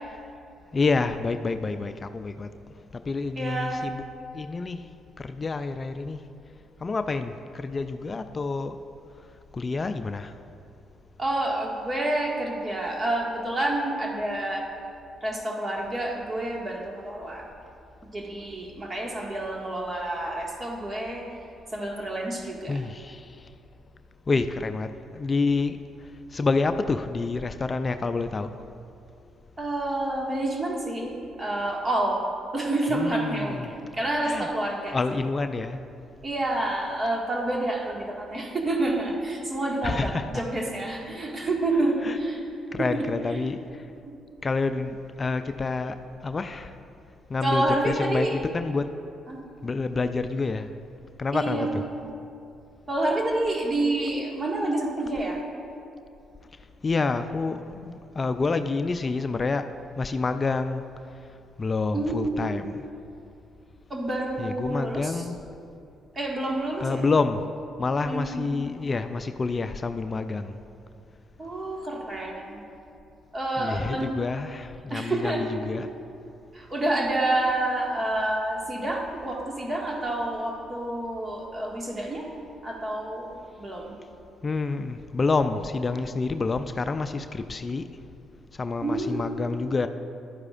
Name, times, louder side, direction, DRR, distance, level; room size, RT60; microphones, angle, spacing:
voice 1, 0.7-2.5 2.9-4.1 4.3-6.2 6.8-8.8 9.5-10.4 22.7-23.5 24.3-28.7 32.9-33.7 34.2-34.5 34.9-35.9 39.8-40.4 42.0-42.2 42.7-43.9 44.4-46.8 47.3-48.9 49.6-50.8 51.2-51.9 56.6-60.8 61.3-62.9 64.4-65.4 66.8-67.4 67.8-70.6 73.6-75.9 84.4-87.9 88.5-89.9, left 3 dB, 35° left, 9 dB, 0.4 m, -28 dB
voice 2, 3.4-3.8 11.2-14.6 15.2-17.4 18.1-21.2 21.7-22.8 29.6-32.2 32.5-35.0 36.2-42.4 42.8-43.0 47.4-48.4 49.3-49.4 51.3-51.7 52.9-55.4 61.9-62.4 63.9-65.1 66.2-67.0 68.1-68.5 71.4-72.6 73.3-74.1 74.9-75.4 76.5-82.3 82.6-83.3 83.6-83.9 88.8-89.2, right 1 dB, 35° right, -1 dB, 1.8 m, -28 dB
11.5 x 9.5 x 2.5 m, 2.6 s
hypercardioid pair, 55°, 0 cm